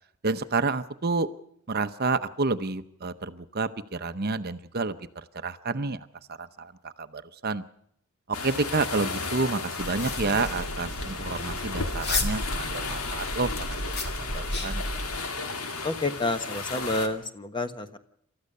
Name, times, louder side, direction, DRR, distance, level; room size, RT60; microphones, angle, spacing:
voice 1, 0.2-1.3 1.7-7.6 8.3-13.9 14.2-14.8, right 3 dB, 45° right, 12 dB, 0.8 m, -30 dB
sound 1, 8.3-17.1, left 3 dB, 80° left, 2.4 m, -34 dB
sound 2, 9.8-15.2, left 1 dB, 45° left, 2.6 m, -33 dB
voice 2, 15.8-18.0, left 2 dB, 20° left, 9 dB, 1.1 m, -29 dB
28.0 x 14.0 x 6.7 m, 0.71 s
head